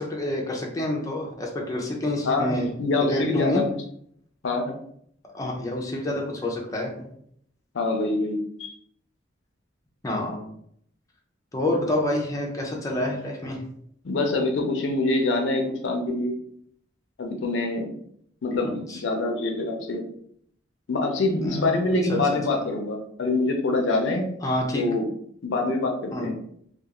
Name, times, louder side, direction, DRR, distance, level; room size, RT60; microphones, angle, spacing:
voice 1, 0.0-2.7 3.0-3.6 5.3-6.9 10.0-10.4 11.5-13.6 18.6-19.0 21.5-21.7 22.1-22.2 22.5-22.6 24.4-24.9 26.1-26.3, left 1 dB, 20° left, -1 dB, 0.4 m, -28 dB
voice 2, 2.2-3.8 4.4-4.7 7.7-8.7 14.0-16.4 17.2-18.0 18.4-20.0 20.9-24.3 24.7-25.0 25.4-26.3, left 2 dB, 75° left, 3 dB, 0.5 m, -25 dB
2.3 x 2.3 x 2.8 m, 0.67 s
head